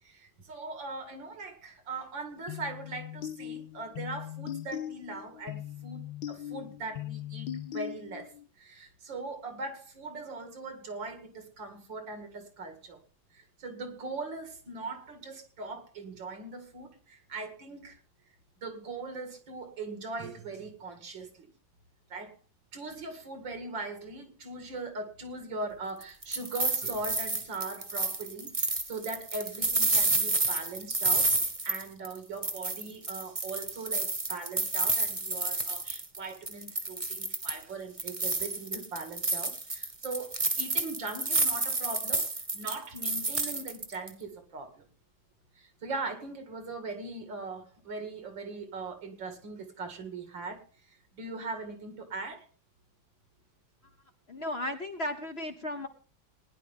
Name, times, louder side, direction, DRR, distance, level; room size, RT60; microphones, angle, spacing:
voice 1, 0.0-13.0 13.3-18.0 18.6-21.5 22.1-22.4 22.7-44.8 45.6-52.5, right 3 dB, 70° right, 7 dB, 2.9 m, -40 dB
sound 1, 2.5-8.4, left 11 dB, 75° left, 1.5 m, -40 dB
sound 2, 26.0-32.2 32.4-36.2 36.5-37.6 38.0-44.1, right 2 dB, 20° right, 1.2 m, -30 dB
voice 2, 54.3-55.9, left 1 dB, 40° left, 6 dB, 1.0 m, -35 dB
20.0 x 10.5 x 3.6 m, 0.37 s
omnidirectional pair, 2.1 m